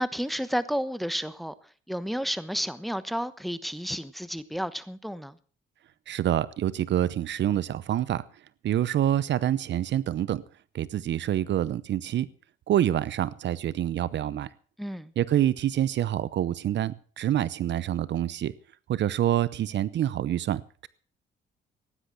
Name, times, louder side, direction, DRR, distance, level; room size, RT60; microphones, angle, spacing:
voice 1, 0.0-1.5 1.9-5.4 14.8-15.1, equal, ahead, 14 dB, 1.1 m, -31 dB
voice 2, 6.1-8.2 8.6-10.4 10.7-12.3 12.7-14.5 15.2-18.5 18.9-20.9, right 11 dB, 65° right, 19 dB, 0.8 m, -26 dB
16.0 x 10.5 x 6.4 m, 0.42 s
cardioid pair, 90°, 20 cm